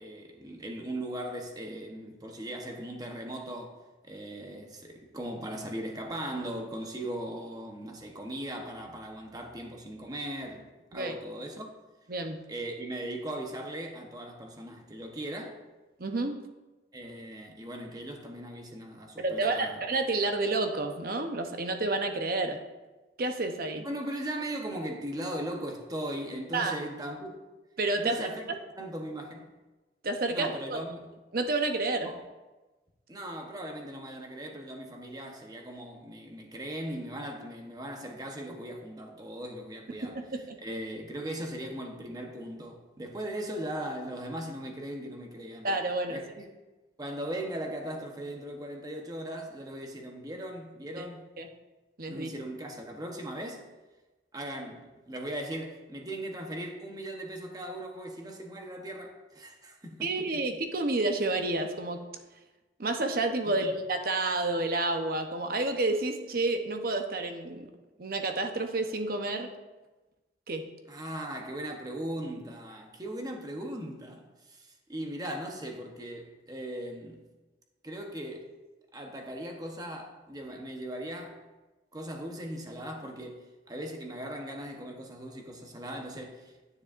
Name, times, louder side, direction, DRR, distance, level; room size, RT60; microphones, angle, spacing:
voice 1, 0.0-3.8 4.0-10.7 10.9-11.8 12.5-15.6 16.9-19.8 23.8-27.4 28.0-28.5 28.8-29.5 30.3-31.1 32.0-32.2 33.1-40.2 40.6-45.7 46.1-46.5 47.0-51.3 52.1-53.6 54.3-60.4 63.4-63.7 70.9-77.2 77.8-78.5 78.9-81.4 81.9-86.5, right 1 dB, 20° right, 1.0 m, -38 dB
voice 2, 16.0-16.4 19.2-22.6 23.2-23.8 26.5-26.8 27.8-28.3 30.0-30.8 31.3-32.1 40.0-40.6 45.6-46.2 51.0-51.1 51.4-51.5 52.0-52.3 60.0-62.0 62.8-67.7 68.0-69.5 70.5-70.6, right 2 dB, 55° right, 0.8 m, -30 dB
9.9 x 9.4 x 2.6 m
head